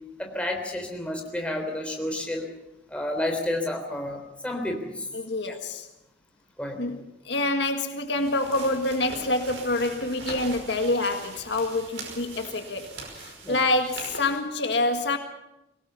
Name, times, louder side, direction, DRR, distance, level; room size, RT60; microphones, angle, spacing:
voice 1, 0.2-2.5 2.9-5.1 6.6-6.8 13.4-13.6, left 1 dB, 5° left, 2 dB, 3.6 m, -30 dB
voice 2, 5.1-5.9 6.8-15.2, left 2 dB, 65° left, 6 dB, 1.8 m, -27 dB
sound 1, 8.1-14.4, right 3 dB, 80° right, 5.4 m, -41 dB
23.0 x 18.5 x 7.0 m, 0.90 s
head